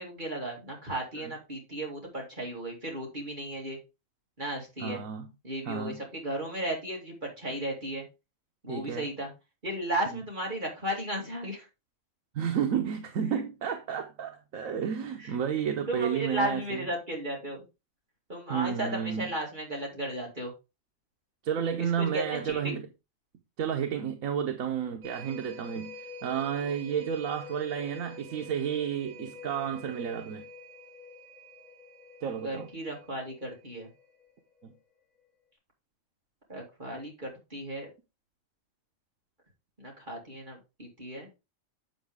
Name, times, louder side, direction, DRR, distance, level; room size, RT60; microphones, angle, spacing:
voice 1, 0.0-3.8 4.4-5.0 5.4-8.0 8.6-9.3 9.6-11.7 13.3-13.4 15.2-15.3 15.9-17.6 18.3-20.5 21.8-22.8 32.4-33.9 36.5-37.9 39.8-41.3, right 1 dB, 35° right, 2.7 m, -35 dB
voice 2, 4.8-5.3 5.7-6.0 8.7-9.1 10.1-10.2 12.3-16.8 18.5-19.3 21.4-22.9 23.6-26.0 26.2-30.4 32.2-32.7 34.6-34.7, right 8 dB, 85° right, 1.3 m, -31 dB
sound 1, 25.0-34.8 35.2-35.3, left 1 dB, 60° right, 3.8 m, -47 dB
7.7 x 7.2 x 3.5 m
omnidirectional pair, 1.4 m